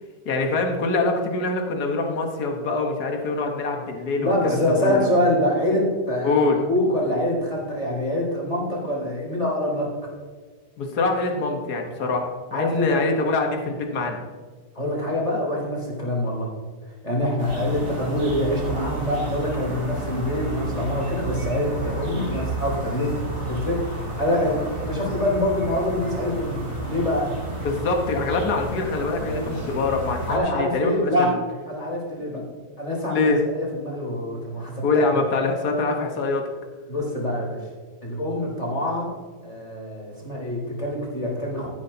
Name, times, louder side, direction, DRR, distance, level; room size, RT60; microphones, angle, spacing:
voice 1, 0.3-5.1 6.2-6.6 10.8-14.2 27.6-31.4 32.3-32.5 33.1-33.4 34.8-36.4, left 3 dB, 70° left, 2 dB, 1.8 m, -24 dB
voice 2, 4.2-9.9 12.5-13.0 14.8-16.5 17.0-23.2 23.5-23.8 24.2-27.3 30.3-31.3 31.7-32.4 32.8-34.8 36.9-37.6 38.0-39.1 39.4-41.7, left 1 dB, 20° left, -3 dB, 3.8 m, -25 dB
sound 1, 17.4-30.4, right 1 dB, 55° right, 3.4 m, -31 dB
13.0 x 10.5 x 2.8 m, 1.4 s
omnidirectional pair, 1.8 m